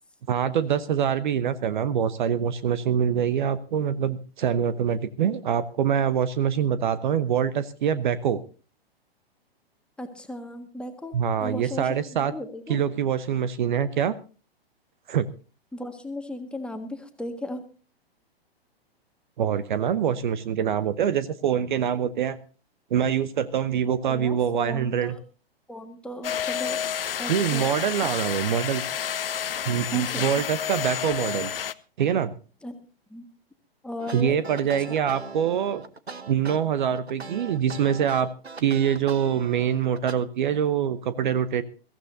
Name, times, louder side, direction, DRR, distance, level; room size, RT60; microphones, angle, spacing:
voice 1, 0.3-8.4 11.1-12.3 12.7-14.1 15.1-15.3 19.4-22.4 22.9-25.1 27.3-28.9 29.7-31.5 32.0-32.3 34.1-35.8 36.3-38.3 38.6-41.6, right 8 dB, 50° right, 15 dB, 0.9 m, -24 dB
voice 2, 10.0-12.8 15.7-17.6 24.1-25.2 25.7-26.8 27.2-27.7 28.0-28.1 29.9-30.2 32.6-32.8 33.1-33.3 33.8-34.4 34.9-35.0, left 1 dB, 5° left, 5 dB, 1.6 m, -36 dB
sound 1, 26.2-31.7, left 9 dB, 65° left, 0.8 m, -30 dB
sound 2, 34.0-40.1, right 4 dB, 85° right, 1.1 m, -40 dB
22.5 x 15.0 x 2.7 m, 0.36 s
figure-of-eight pair, 110°, 31 cm